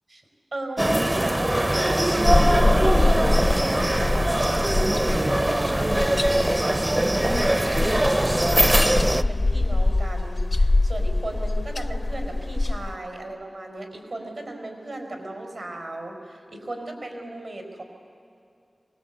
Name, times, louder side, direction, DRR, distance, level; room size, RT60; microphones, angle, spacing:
voice 1, 0.5-4.8 5.1-17.8, right 2 dB, 75° right, 3 dB, 4.6 m, -36 dB
sound 1, 0.8-9.2, right 1 dB, 25° right, 0.6 m, -22 dB
sound 2, 2.2-12.9, left 2 dB, 50° left, 0.5 m, -24 dB
24.0 x 20.0 x 8.3 m, 2.5 s
wide cardioid pair, 55°, 0 cm